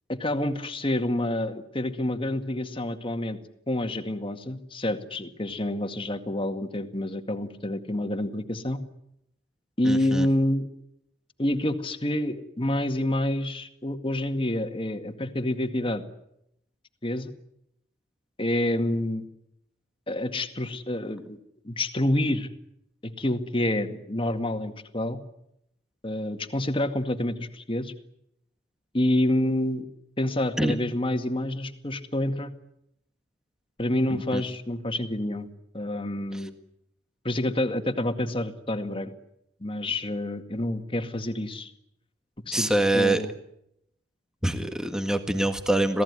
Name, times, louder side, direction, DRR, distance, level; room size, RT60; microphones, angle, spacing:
voice 1, 0.1-3.4 3.7-8.8 9.8-10.7 11.4-16.0 17.0-17.3 18.4-19.3 20.1-21.4 21.6-22.5 23.0-25.2 26.0-27.9 28.9-29.9 30.2-32.5 33.8-36.5 37.2-39.1 39.6-41.7 42.5-43.3, left 1 dB, 30° left, 7 dB, 2.0 m, -28 dB
voice 2, 9.8-10.3 30.6-30.7 34.1-34.4 42.5-43.2 44.4-46.0, right 1 dB, 5° right, 7 dB, 1.7 m, -25 dB
27.0 x 18.0 x 9.8 m, 0.78 s
head